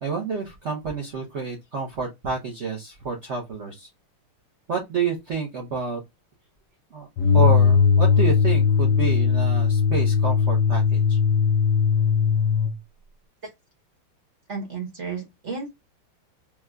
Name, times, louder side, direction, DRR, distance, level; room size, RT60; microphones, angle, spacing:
voice 1, 0.0-3.9 4.7-6.0 6.9-7.1 7.3-11.2, right 5 dB, 85° right, 0.6 m, -29 dB
sound 1, 7.2-12.8, left 6 dB, 85° left, 0.9 m, -19 dB
voice 2, 14.5-15.7, right 4 dB, 40° right, 1.1 m, -33 dB
4.6 x 2.2 x 2.3 m
omnidirectional pair, 2.4 m